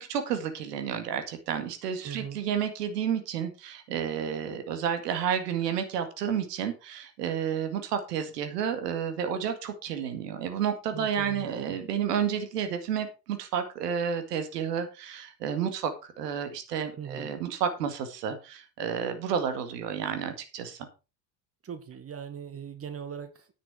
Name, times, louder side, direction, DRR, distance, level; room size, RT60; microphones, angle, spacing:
voice 1, 0.0-20.8, right 8 dB, 70° right, 2.1 m, -31 dB
voice 2, 2.0-2.4 10.9-11.8 17.0-17.3 21.6-23.5, right 8 dB, 30° right, 1.8 m, -40 dB
10.0 x 8.2 x 4.9 m
figure-of-eight pair, 70°, 49 cm